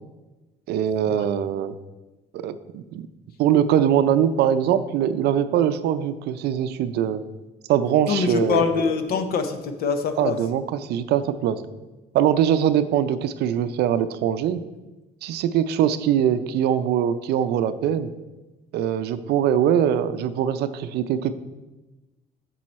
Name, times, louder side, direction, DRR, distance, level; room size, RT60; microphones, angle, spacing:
voice 1, 0.7-1.7 2.3-3.1 3.4-7.2 7.7-8.6 10.2-11.6 12.1-14.6 15.2-18.1 18.7-21.3, right 9 dB, 75° right, 11 dB, 0.5 m, -22 dB
voice 2, 8.1-10.4, left 5 dB, 65° left, 8 dB, 0.9 m, -24 dB
7.5 x 6.9 x 4.2 m, 1.1 s
cardioid pair, 110°, 17 cm